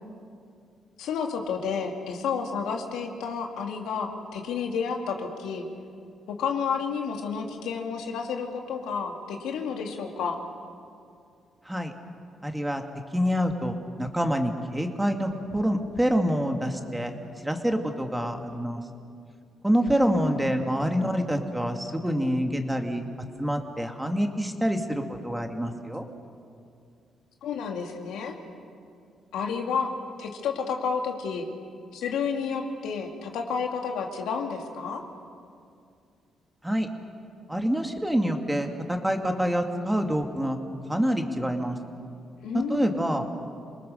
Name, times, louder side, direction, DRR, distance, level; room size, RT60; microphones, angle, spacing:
voice 1, 1.0-5.7 6.3-10.4 19.8-20.4 27.4-28.4 29.3-29.9 30.2-31.5 31.9-35.1 42.4-43.1, left 6 dB, 85° left, 2 dB, 2.4 m, -31 dB
voice 2, 12.4-12.8 13.1-17.1 17.4-18.8 19.6-23.0 23.4-26.0 36.6-36.9 37.5-40.6 40.9-41.8 42.5-43.2, equal, 5° right, 4 dB, 2.1 m, -26 dB
27.5 x 20.0 x 6.5 m, 2.3 s
cardioid pair, 90°, 0 cm